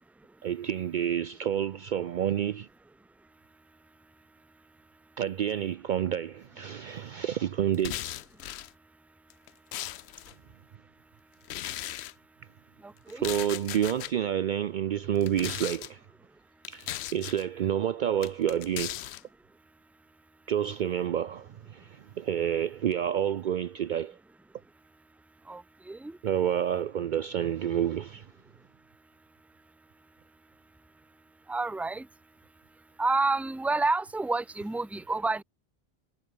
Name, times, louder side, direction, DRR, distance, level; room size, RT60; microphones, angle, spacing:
voice 1, 0.4-2.7 5.2-8.0 13.1-16.0 16.7-19.0 20.5-24.2 26.2-28.3, right 9 dB, 60° right, 0.6 m, -29 dB
sound 1, 7.7-8.7 9.3-10.3 11.4-12.1 13.1-14.1 15.2-15.9 16.6-17.4 18.2-19.2, left 13 dB, 80° left, 0.8 m, -37 dB
voice 2, 12.8-13.2 25.5-26.2 31.5-32.1 33.0-35.4, right 3 dB, ahead, 0.7 m, -29 dB
omnidirectional pair, 1.1 m